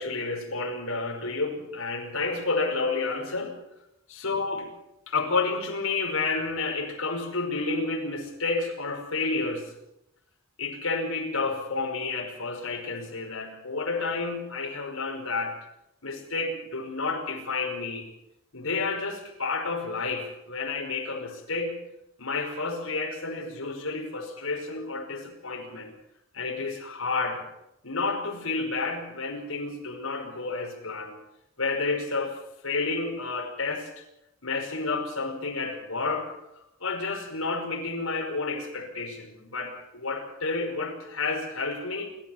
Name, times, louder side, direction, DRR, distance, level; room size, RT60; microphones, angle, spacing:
voice 1, 0.0-3.6 4.1-4.7 5.1-9.7 10.6-15.6 16.0-18.1 18.5-21.8 22.2-25.9 26.3-27.5 27.8-31.2 31.6-33.9 34.4-36.3 36.8-42.1, left 3 dB, 80° left, 2 dB, 5.4 m, -30 dB
29.0 x 13.5 x 7.3 m, 0.87 s
head